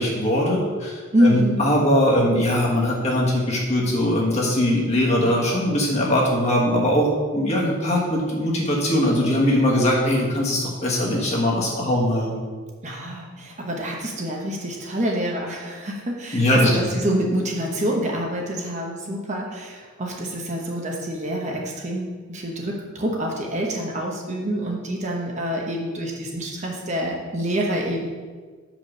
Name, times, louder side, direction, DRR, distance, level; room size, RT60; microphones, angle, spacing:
voice 1, 0.0-7.1 7.3-12.4 16.3-16.7, left 1 dB, 30° left, -3 dB, 1.4 m, -21 dB
voice 2, 1.1-1.7 12.8-28.1, equal, 35° right, -1 dB, 0.9 m, -26 dB
5.1 x 5.1 x 6.3 m, 1.5 s
head